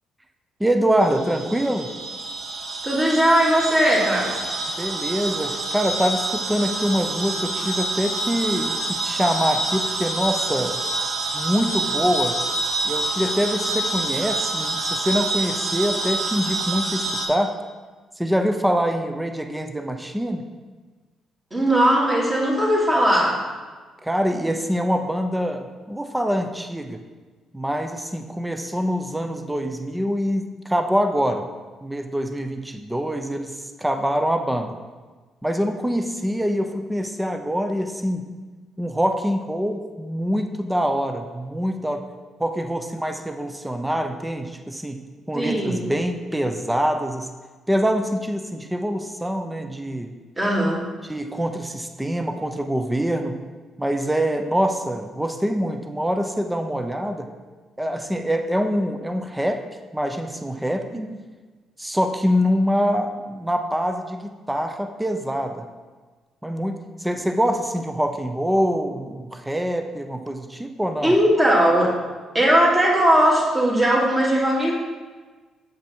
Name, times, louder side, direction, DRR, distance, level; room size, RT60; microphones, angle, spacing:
voice 1, 0.6-1.9 4.8-10.9 11.3-12.4 12.8-17.5 18.2-20.5 24.0-27.0 27.5-31.4 31.8-34.8 35.4-38.3 38.8-42.0 42.4-47.3 47.7-50.1 51.1-53.4 53.8-57.3 57.8-59.6 59.9-61.1 61.8-65.7 66.4-71.2, equal, 10° right, 6 dB, 0.6 m, -25 dB
sound 1, 1.0-17.3, right 2 dB, 50° right, 1.0 m, -27 dB
voice 2, 2.8-4.5 21.5-23.4 45.3-45.9 50.4-50.9 60.9-61.0 71.0-71.9 72.3-74.7, right 1 dB, 25° right, -4 dB, 2.4 m, -19 dB
7.2 x 5.4 x 4.5 m, 1.4 s
cardioid pair, 90°, 0 cm